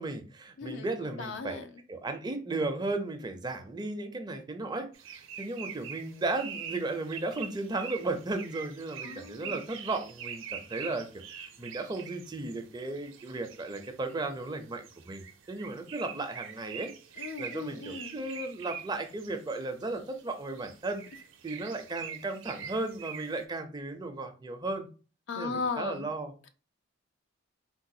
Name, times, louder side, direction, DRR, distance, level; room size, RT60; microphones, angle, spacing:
voice 1, 0.0-1.6 1.9-4.9 5.4-11.1 11.3-16.9 17.4-21.0 21.4-24.9 25.4-26.3, right 2 dB, 20° right, 6 dB, 0.4 m, -35 dB
voice 2, 0.6-0.9 1.2-1.7 9.0-9.6 17.2-18.2 25.3-26.1, left 4 dB, 65° left, 8 dB, 0.4 m, -37 dB
sound 1, 4.9-23.4, right 7 dB, 75° right, 0.5 m, -45 dB
3.9 x 2.1 x 2.6 m, 0.35 s
head